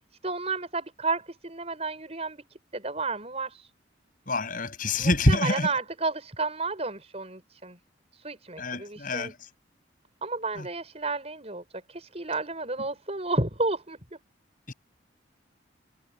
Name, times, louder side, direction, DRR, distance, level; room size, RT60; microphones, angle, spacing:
voice 1, 0.2-2.4 2.7-3.7 5.0-7.8 8.1-9.3 10.2-11.6 11.9-14.0, right 3 dB, 35° right, 6.2 m, -31 dB
voice 2, 4.3-5.7 8.6-9.4 10.6-10.7 14.7-14.8, left 1 dB, 45° left, 6.7 m, -26 dB
head